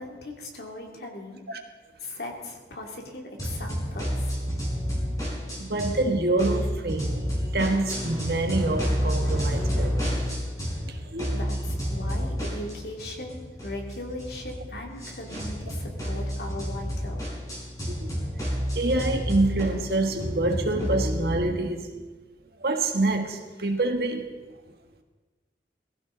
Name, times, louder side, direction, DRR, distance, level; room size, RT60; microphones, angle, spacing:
voice 1, 0.0-1.4 2.0-4.4 11.3-17.3, left 1 dB, 65° left, 2.7 m, -38 dB
sound 1, 3.4-6.1 6.4-10.9 11.2-21.4, equal, 20° left, 4.7 m, -30 dB
voice 2, 5.6-10.1 10.8-11.4 18.0-18.1 18.4-22.0 22.6-24.3, right 2 dB, 65° right, 1.6 m, -27 dB
19.5 x 15.5 x 3.9 m
head